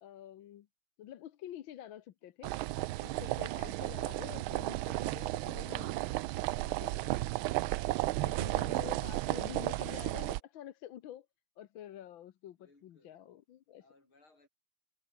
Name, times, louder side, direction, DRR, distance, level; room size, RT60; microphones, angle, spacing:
voice 1, 0.0-0.7 1.0-2.5 3.0-6.0 6.6-7.3 8.2-11.3 11.6-13.8, left 11 dB, 70° left, 1.7 m, -48 dB
sound 1, 2.4-10.4, right 17 dB, 80° right, 1.4 m, -34 dB
voice 2, 2.7-3.1 12.6-13.3 13.8-14.5, left 2 dB, 90° left, 7.9 m, -68 dB
omnidirectional pair, 2.2 m